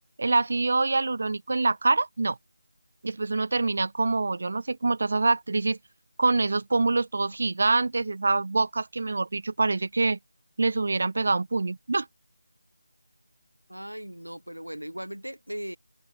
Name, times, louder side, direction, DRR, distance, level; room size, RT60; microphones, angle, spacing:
voice 1, 0.2-2.4 3.0-5.8 6.2-10.2 10.6-12.1, right 3 dB, 45° right, 0.3 m, -25 dB
voice 2, 13.7-15.8, equal, 85° right, 2.1 m, -38 dB
figure-of-eight pair, 160°, 0 cm